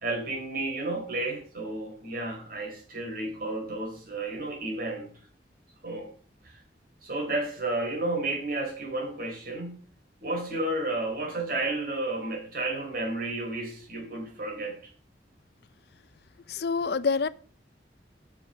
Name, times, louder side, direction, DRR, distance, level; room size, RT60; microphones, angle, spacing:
voice 1, 0.0-5.1 5.8-6.1 6.4-6.6 7.0-9.8 10.2-14.9, right 2 dB, 50° right, 4.0 m, -32 dB
voice 2, 16.5-17.3, left 5 dB, 60° left, 0.5 m, -26 dB
9.3 x 6.4 x 6.3 m
head